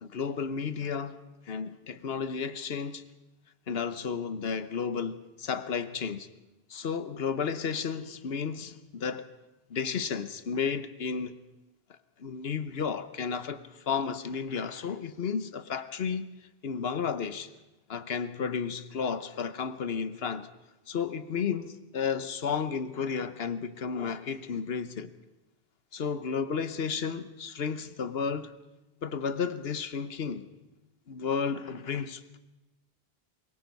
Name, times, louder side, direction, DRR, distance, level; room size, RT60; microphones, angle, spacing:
voice 1, 0.0-1.1 1.5-3.0 3.7-6.3 6.7-9.3 9.7-11.4 12.2-16.3 16.6-17.5 17.9-20.5 20.9-25.1 25.9-28.5 29.0-30.5 31.1-32.4, left 6 dB, 70° left, 1.2 m, -32 dB
23.0 x 21.5 x 5.4 m
omnidirectional pair, 1.1 m